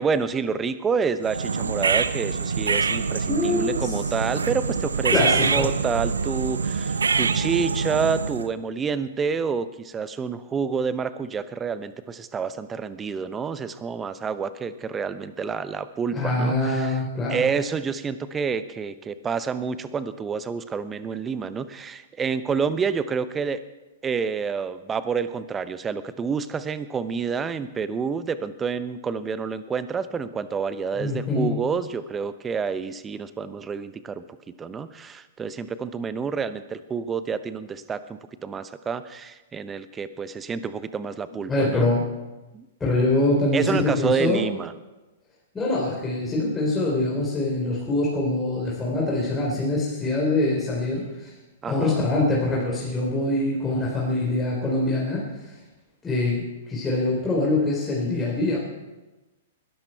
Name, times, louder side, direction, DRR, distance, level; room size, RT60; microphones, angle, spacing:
voice 1, 0.0-17.0 17.3-23.6 24.0-34.2 34.6-41.9 42.5-42.7 43.5-44.7 51.6-52.1, right 5 dB, 20° right, 13 dB, 0.9 m, -28 dB
sound 1, 1.2-8.5, right 5 dB, 75° right, 0.8 m, -25 dB
voice 2, 3.2-3.9 5.1-5.7 16.1-17.5 31.0-31.5 41.5-42.0 42.8-44.4 45.5-51.3 51.6-55.2 56.0-58.6, left 2 dB, 15° left, -5 dB, 4.3 m, -24 dB
21.0 x 12.5 x 4.6 m, 1.1 s
figure-of-eight pair, 110°, 0 cm